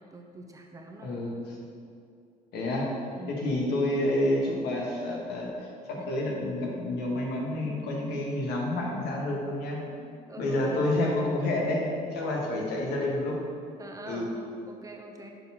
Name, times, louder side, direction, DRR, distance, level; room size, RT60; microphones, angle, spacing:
voice 1, 0.1-1.1 3.2-3.7 5.9-6.1 9.9-10.8 13.8-15.3, right 2 dB, 20° right, 2 dB, 0.6 m, -45 dB
voice 2, 1.0-1.5 2.5-2.9 3.3-9.8 10.4-13.4 14.0-14.3, left 1 dB, 80° left, -2 dB, 1.4 m, -29 dB
6.6 x 4.3 x 4.2 m, 2.4 s
cardioid pair, 110°, 17 cm